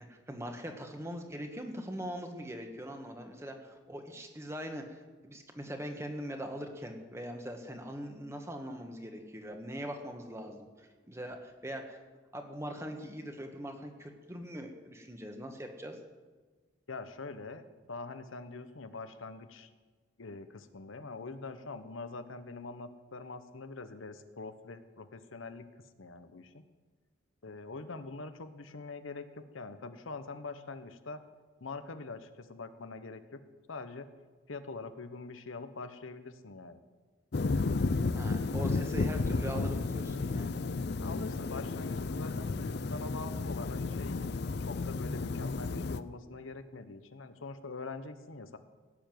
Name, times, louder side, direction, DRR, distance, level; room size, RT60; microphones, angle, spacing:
voice 1, 0.0-12.0 12.3-16.0 38.1-40.5, equal, 15° right, 4 dB, 1.4 m, -42 dB
voice 2, 16.9-19.7 20.2-25.6 26.0-26.6 27.4-31.2 31.6-33.4 33.7-34.1 34.5-36.8 41.0-42.5 42.9-44.3 44.6-48.6, left 3 dB, 80° left, 9 dB, 1.0 m, -44 dB
sound 1, 37.3-46.0, left 3 dB, 55° left, 0.5 m, -32 dB
17.5 x 7.1 x 9.3 m, 1.3 s
head